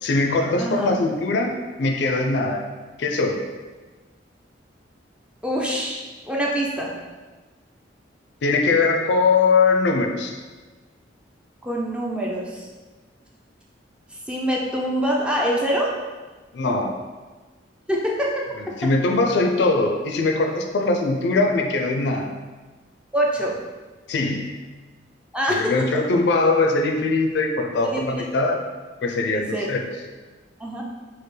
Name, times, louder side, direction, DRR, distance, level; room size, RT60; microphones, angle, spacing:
voice 1, 0.0-2.6 3.0-3.4 8.4-10.4 16.5-17.0 18.8-22.3 24.1-24.6 25.5-28.6 29.0-29.9, left 3 dB, 65° left, 3 dB, 0.4 m, -21 dB
voice 2, 0.6-1.0 5.4-6.9 11.6-12.7 14.1-15.9 17.9-18.3 18.8-18.9 23.1-23.6 25.3-25.7 27.8-28.2 29.3-29.7 30.6-30.8, equal, 5° right, -3 dB, 0.4 m, -25 dB
4.4 x 2.0 x 3.2 m, 1.3 s
head